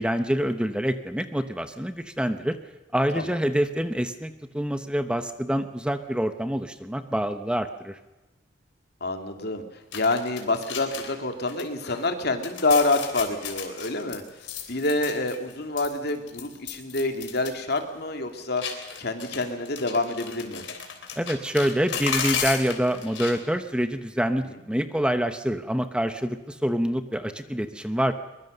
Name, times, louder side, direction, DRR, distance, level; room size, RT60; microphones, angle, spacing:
voice 1, 0.0-2.6 2.9-8.0 21.2-28.1, equal, 5° right, 9 dB, 0.9 m, -26 dB
voice 2, 9.0-9.6 9.9-14.2 14.7-18.6 19.0-20.6 24.5-24.6, left 2 dB, 60° left, 6 dB, 2.6 m, -27 dB
sound 1, 9.9-11.2 11.5-12.1 12.4-15.5 15.8-17.5 17.8-17.9 18.6-23.4, left 7 dB, 85° left, 3.4 m, -34 dB
23.0 x 22.0 x 6.7 m, 1.1 s
head